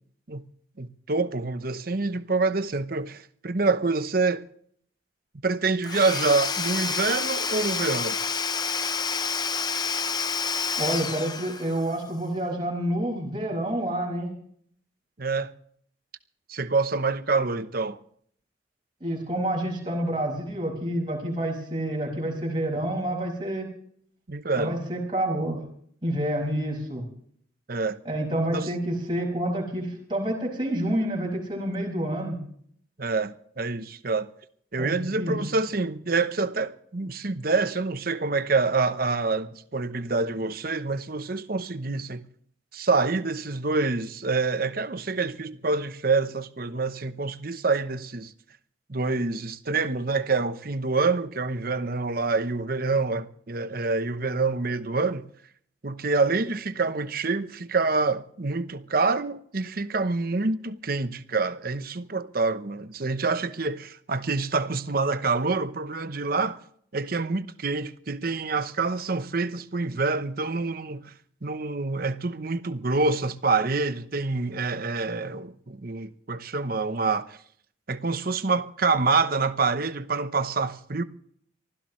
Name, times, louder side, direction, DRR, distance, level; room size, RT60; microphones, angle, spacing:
voice 1, 0.8-4.4 5.4-8.2 15.2-15.5 16.5-18.0 24.3-24.8 27.7-28.0 28.5-28.7 33.0-34.3 34.7-42.2 42.7-48.3 48.9-55.2 55.8-66.6 66.9-71.1 71.4-77.4 77.9-81.0, right 3 dB, 50° right, 0.9 m, -26 dB
Domestic sounds home sounds / Tools, 5.8-11.9, left 5 dB, 20° left, 0.6 m, -28 dB
voice 2, 10.7-14.3 19.0-23.7 24.6-25.6 26.0-27.0 28.0-32.4 34.8-35.4, right 1 dB, 25° right, 5.8 m, -28 dB
24.5 x 15.5 x 3.2 m
head